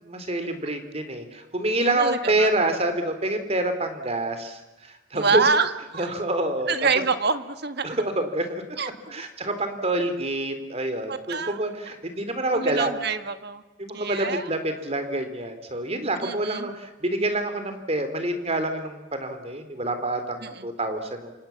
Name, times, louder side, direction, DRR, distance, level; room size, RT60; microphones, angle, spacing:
voice 1, 0.0-5.4 6.0-6.7 7.8-8.6 9.1-12.9 13.8-21.3, right 1 dB, 30° right, 8 dB, 3.6 m, -27 dB
voice 2, 1.8-2.5 5.1-6.1 6.7-8.0 8.8-9.1 11.1-11.6 12.5-13.6 13.9-14.5 16.2-16.7 20.4-20.7, right 4 dB, 55° right, 10 dB, 1.7 m, -26 dB
27.5 x 26.5 x 7.3 m, 1.1 s
head